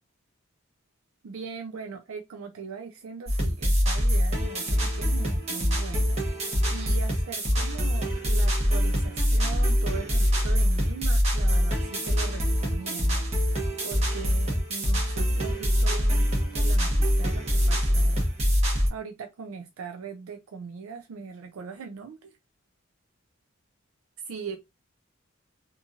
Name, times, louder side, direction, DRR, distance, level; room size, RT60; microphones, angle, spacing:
voice 1, 1.2-6.2 6.7-16.2 16.5-18.3 18.9-22.3 24.3-24.6, right 5 dB, 75° right, 0.4 m, -40 dB
sound 1, 3.3-18.9, equal, 30° right, 0.9 m, -24 dB
2.9 x 2.6 x 2.3 m
head